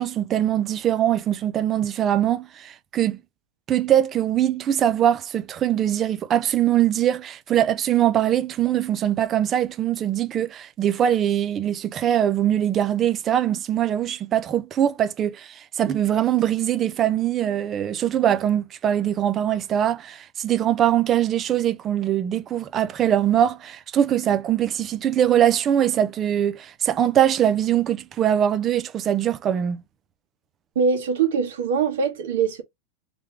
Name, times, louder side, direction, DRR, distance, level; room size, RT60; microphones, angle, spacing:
voice 1, 0.0-3.2 3.7-29.8, right 10 dB, 20° right, 0.4 m, -22 dB
voice 2, 30.8-32.6, right 6 dB, 80° right, 1.9 m, -22 dB
3.4 x 3.2 x 3.5 m
supercardioid pair, 165°, 0 cm